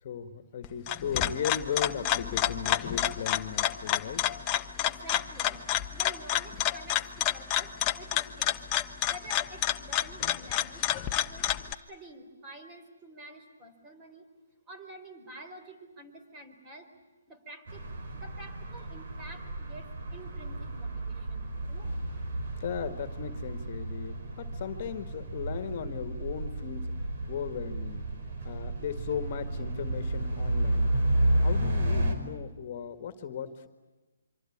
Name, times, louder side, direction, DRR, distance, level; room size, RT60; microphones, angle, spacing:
voice 1, 0.0-4.3 22.6-27.0 27.3-28.0 28.4-30.9 31.4-33.7, left 8 dB, 45° left, 9 dB, 1.8 m, -37 dB
sound 1, 0.6-11.7, left 11 dB, 25° left, 1.0 m, -29 dB
voice 2, 0.8-1.3 4.8-5.6 5.9-8.5 9.1-11.5 11.9-14.2 14.7-16.9 17.3-17.9 18.1-21.9, right 1 dB, 20° right, 6 dB, 4.1 m, -48 dB
sound 2, 17.7-32.1, right 1 dB, 55° right, 5.2 m, -32 dB
25.5 x 25.5 x 8.7 m, 1.2 s
hypercardioid pair, 150°, 0 cm